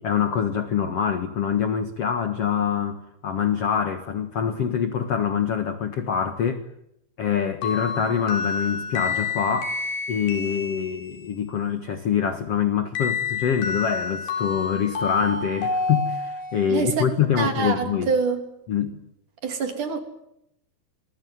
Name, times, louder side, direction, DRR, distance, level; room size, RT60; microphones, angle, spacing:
voice 1, 0.0-6.6 7.2-9.8 10.1-18.1 18.7-19.0, left 8 dB, 75° left, 9 dB, 1.4 m, -25 dB
sound 1, 7.6-11.4 13.0-16.7, left 4 dB, 60° left, 6.5 m, -29 dB
voice 2, 16.7-17.0 17.4-18.4 19.4-20.0, right 5 dB, 45° right, 6 dB, 4.1 m, -25 dB
27.5 x 22.5 x 9.6 m, 0.80 s
omnidirectional pair, 5.2 m